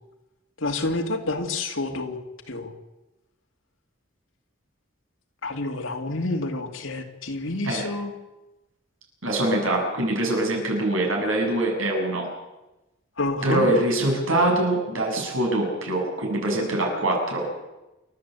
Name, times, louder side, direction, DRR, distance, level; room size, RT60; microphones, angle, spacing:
voice 1, 0.6-2.2 2.5-2.7 5.4-8.1 13.2-13.7, left 2 dB, 80° left, 4 dB, 2.6 m, -28 dB
voice 2, 9.2-12.3 13.4-17.5, right 1 dB, 80° right, 0 dB, 7.8 m, -24 dB
29.0 x 12.5 x 8.4 m, 1.0 s
head